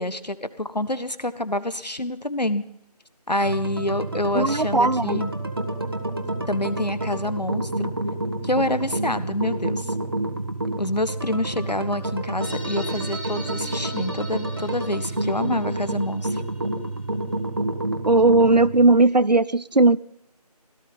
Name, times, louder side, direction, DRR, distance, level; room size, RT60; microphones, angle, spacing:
voice 1, 0.0-2.6 3.3-5.3 6.5-7.9 8.4-9.9 10.8-16.4, left 1 dB, 90° left, 14 dB, 1.5 m, -27 dB
sound 1, 3.4-18.8, right 1 dB, 35° right, 1.8 m, -29 dB
voice 2, 4.3-5.2 18.0-20.0, right 2 dB, 90° right, 20 dB, 0.8 m, -17 dB
sound 2, 12.4-17.3, equal, 15° left, 1.6 m, -39 dB
17.5 x 14.0 x 5.4 m, 0.77 s
figure-of-eight pair, 170°, 21 cm